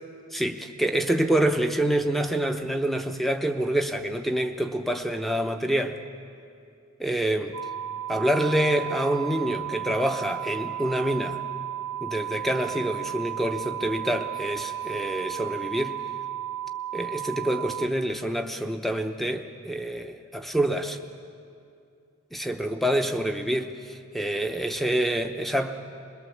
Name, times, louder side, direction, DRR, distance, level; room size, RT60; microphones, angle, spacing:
voice 1, 0.3-6.0 7.0-7.5 8.1-11.4 12.0-16.0 16.9-21.0 22.3-25.9, right 1 dB, ahead, 6 dB, 0.8 m, -27 dB
sound 1, 7.5-17.9, right 12 dB, 85° right, 0.8 m, -34 dB
24.0 x 21.5 x 7.2 m, 2.4 s
head